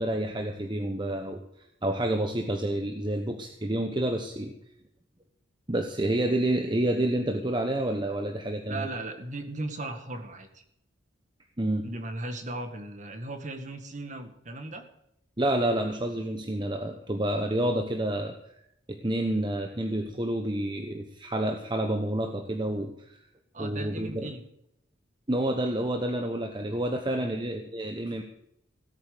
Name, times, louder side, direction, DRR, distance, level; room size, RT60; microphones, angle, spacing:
voice 1, 0.0-1.4 1.8-4.5 5.7-8.9 11.6-11.8 15.4-18.3 18.9-23.1 23.6-24.3 25.3-28.2, right 1 dB, 25° right, 4 dB, 1.1 m, -29 dB
voice 2, 8.7-10.6 11.8-14.9 23.5-24.4 27.1-27.3, right 2 dB, 40° right, 6 dB, 1.9 m, -37 dB
17.0 x 9.0 x 6.7 m, 0.76 s
head